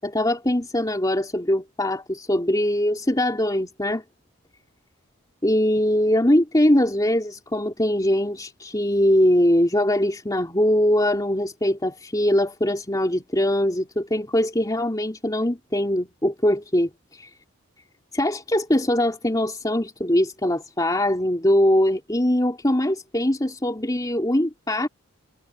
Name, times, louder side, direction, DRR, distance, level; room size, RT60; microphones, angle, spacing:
voice 1, 0.0-4.0 5.4-17.3 18.1-24.9, left 1 dB, 15° left, 3.3 m, -22 dB
head